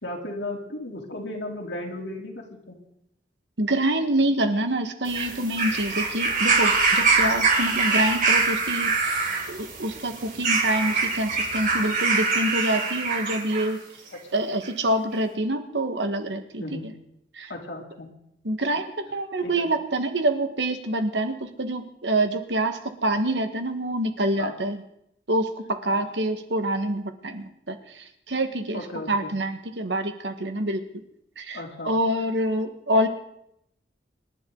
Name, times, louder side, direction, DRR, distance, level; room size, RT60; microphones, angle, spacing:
voice 1, 0.0-2.8 7.2-7.3 16.6-16.9 17.5-18.1 19.4-19.6 24.4-24.6 25.8-26.0 28.7-29.3 31.5-31.9, left 1 dB, 85° left, 0 dB, 3.5 m, -35 dB
voice 2, 3.6-9.2 9.5-13.8 14.3-16.9 17.3-17.5 18.4-24.8 25.3-28.8 29.1-30.8 31.4-31.6 31.8-33.1, right 1 dB, 85° right, 7 dB, 1.7 m, -26 dB
sound 1, 5.1-13.7 14.6-14.7, right 4 dB, 50° right, 3.3 m, -24 dB
26.5 x 10.5 x 4.0 m, 0.78 s
head